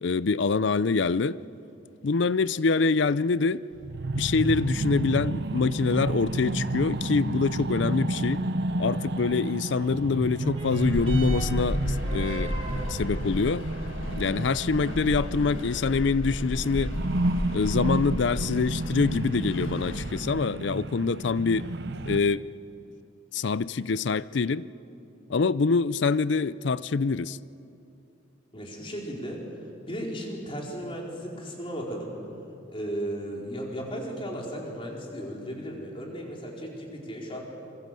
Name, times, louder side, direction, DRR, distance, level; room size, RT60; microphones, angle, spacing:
voice 1, 0.0-1.4 2.0-3.6 4.1-8.4 8.8-12.5 12.9-13.7 14.2-16.9 17.5-21.7 22.1-22.5 23.3-24.7 25.3-27.4, left 4 dB, 65° left, 0.5 m, -25 dB
sound 1, 3.7-16.2 16.4-22.2, right 2 dB, 55° right, 0.7 m, -31 dB
sound 2, 10.2-19.2 20.1-20.2, right 2 dB, 30° right, 3.7 m, -45 dB
sound 3, 10.8-20.2, left 1 dB, 90° left, 1.6 m, -33 dB
voice 2, 28.5-32.2 32.7-37.4, equal, 25° left, 4.4 m, -35 dB
27.0 x 23.0 x 7.6 m
head